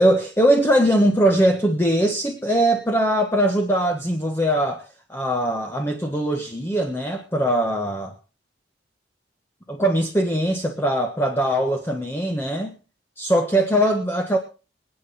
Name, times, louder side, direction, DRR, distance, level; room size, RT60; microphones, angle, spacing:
voice 1, 0.0-8.1 9.7-12.8 13.2-14.4, right 1 dB, 15° left, 3 dB, 1.4 m, -21 dB
26.0 x 9.1 x 4.3 m, 0.36 s
head